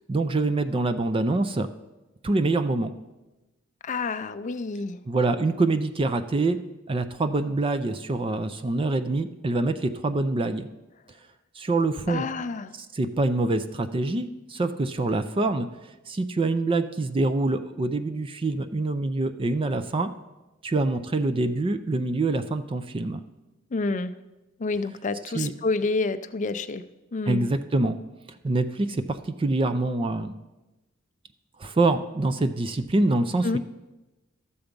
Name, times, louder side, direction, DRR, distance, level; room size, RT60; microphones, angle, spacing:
voice 1, 0.1-1.7 2.2-2.9 5.1-6.6 6.9-10.7 11.6-12.3 12.8-15.7 16.1-20.1 20.6-23.2 25.3-25.5 27.3-28.0 28.4-30.3 31.6-33.6, right 2 dB, 25° right, 10 dB, 0.4 m, -25 dB
voice 2, 3.8-5.0 12.1-12.7 23.7-24.2 24.6-26.8 27.1-27.5 33.4-33.6, left 3 dB, 35° left, 11 dB, 0.5 m, -28 dB
12.5 x 7.0 x 5.2 m, 1.1 s
head